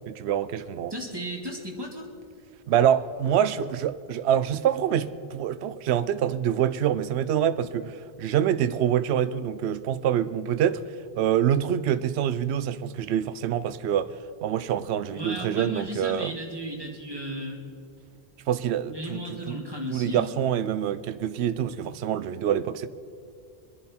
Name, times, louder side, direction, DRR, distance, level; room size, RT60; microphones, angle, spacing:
voice 1, 0.1-0.9 2.7-10.8 11.2-14.1 14.4-16.3 18.5-19.6 19.9-22.9, right 10 dB, 80° right, 0.8 m, -26 dB
voice 2, 0.9-2.0 15.1-17.7 18.9-20.4, equal, 20° right, 2.3 m, -35 dB
24.0 x 10.5 x 4.3 m
omnidirectional pair, 1.1 m